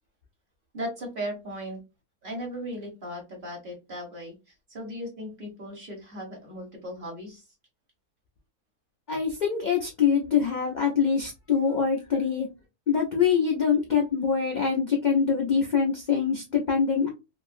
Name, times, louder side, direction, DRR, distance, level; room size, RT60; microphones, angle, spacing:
voice 1, 0.7-1.8 2.2-4.3 4.7-7.4, equal, 40° right, 0 dB, 1.1 m, -37 dB
voice 2, 9.1-12.5 12.9-17.1, left 6 dB, 70° left, 0 dB, 0.4 m, -24 dB
2.9 x 2.5 x 2.5 m, 0.26 s
omnidirectional pair, 1.6 m